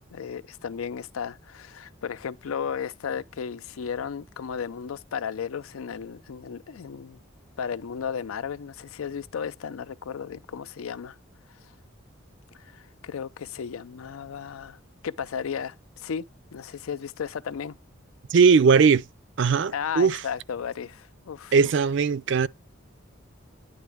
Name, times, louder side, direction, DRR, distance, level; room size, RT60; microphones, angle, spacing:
voice 1, 0.0-7.2 7.6-11.2 12.5-14.8 15.0-16.3 16.5-17.8 19.7-21.7, left 7 dB, 90° left, 0.4 m, -34 dB
voice 2, 18.3-19.0 19.4-20.2 21.5-22.5, right 5 dB, 60° right, 0.4 m, -19 dB
9.5 x 3.8 x 3.4 m
head